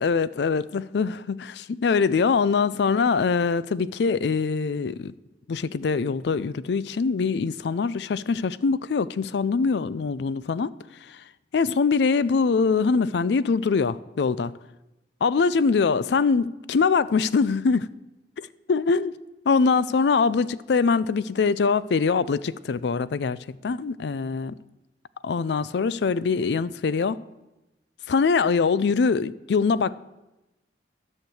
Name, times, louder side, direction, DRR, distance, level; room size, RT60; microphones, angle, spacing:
voice 1, 0.0-5.1 5.5-10.7 11.0-11.2 11.5-14.5 15.2-17.9 18.4-19.1 19.5-24.6 25.2-27.2 28.1-29.9, left 5 dB, 65° left, 0.4 m, -23 dB
11.5 x 6.6 x 7.8 m
head